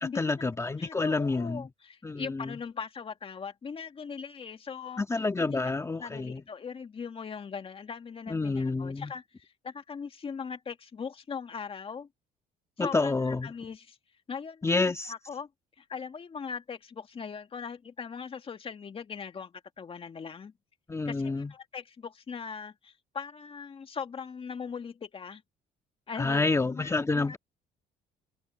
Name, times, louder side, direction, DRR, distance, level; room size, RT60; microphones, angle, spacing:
voice 1, 0.0-1.7 2.0-2.5 5.0-6.4 8.3-9.1 12.8-13.5 14.6-15.1 20.9-21.5 26.2-27.4, left 3 dB, 15° left, 1.6 m, -28 dB
voice 2, 0.8-5.0 5.4-5.6 5.9-12.1 12.8-14.0 14.3-15.5 15.8-20.5 21.1-25.4 26.1-27.4, left 6 dB, 35° left, 2.0 m, -40 dB
cardioid pair, 110°, 17 cm